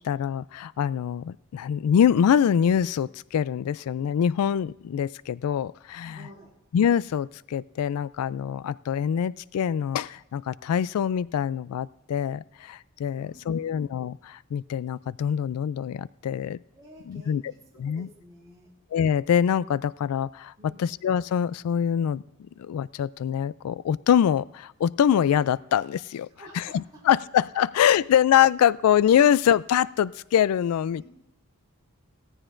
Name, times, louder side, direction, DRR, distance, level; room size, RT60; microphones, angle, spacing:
voice 1, 0.0-6.2 6.7-16.6 17.1-17.4 17.8-18.1 18.9-22.2 22.6-26.3 26.6-31.1, left 9 dB, 85° left, 18 dB, 0.3 m, -24 dB
voice 2, 6.1-6.5 13.1-13.8 16.7-18.7 20.6-20.9 26.3-27.0 30.9-31.1, right 1 dB, 20° right, -5 dB, 3.2 m, -51 dB
17.5 x 14.0 x 2.6 m, 0.88 s
head